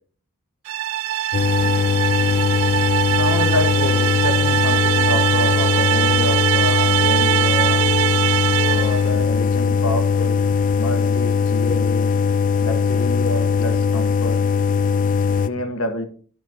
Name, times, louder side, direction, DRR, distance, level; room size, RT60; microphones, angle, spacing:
sound 1, 0.7-9.1, right 13 dB, 70° right, 0.4 m, -21 dB
sound 2, 1.3-15.5, left 5 dB, 40° left, 0.4 m, -20 dB
voice 1, 3.1-7.9 8.6-10.4 10.8-12.1 12.6-14.4 15.4-16.0, left 1 dB, 70° left, 5 dB, 1.4 m, -28 dB
11.5 x 6.2 x 2.9 m, 0.43 s
head